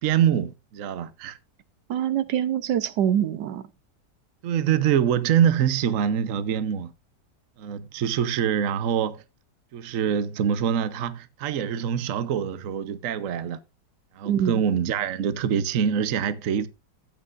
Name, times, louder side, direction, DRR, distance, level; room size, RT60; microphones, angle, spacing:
voice 1, 0.0-1.4 4.4-6.9 7.6-9.2 9.7-13.6 14.2-16.7, right 8 dB, 55° right, 1.1 m, -24 dB
voice 2, 1.9-3.6 14.2-14.6, right 10 dB, 80° right, 1.4 m, -24 dB
14.0 x 8.7 x 2.5 m
omnidirectional pair, 1.8 m